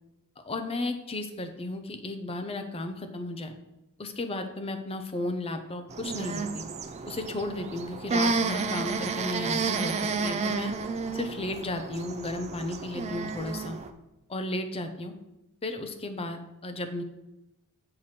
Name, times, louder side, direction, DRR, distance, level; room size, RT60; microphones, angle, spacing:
voice 1, 0.4-3.5 4.0-6.6 7.0-10.0 10.2-10.7 11.1-13.8 14.3-15.1 15.6-17.0, left 2 dB, 25° left, 7 dB, 0.6 m, -34 dB
sound 1, 5.9-13.9, right 4 dB, 30° right, 0.4 m, -31 dB
6.7 x 3.1 x 5.7 m, 0.94 s
head